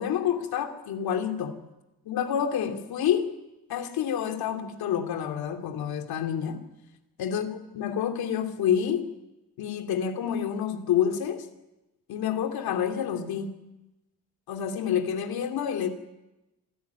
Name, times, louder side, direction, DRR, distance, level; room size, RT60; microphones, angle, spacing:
voice 1, 0.0-1.6 2.0-3.3 3.7-6.6 7.2-7.5 7.7-9.1 9.6-11.5 12.1-13.6 14.5-15.9, left 8 dB, 70° left, 6 dB, 2.9 m, -28 dB
26.0 x 16.0 x 9.4 m, 0.99 s
cardioid pair, 170°, 38 cm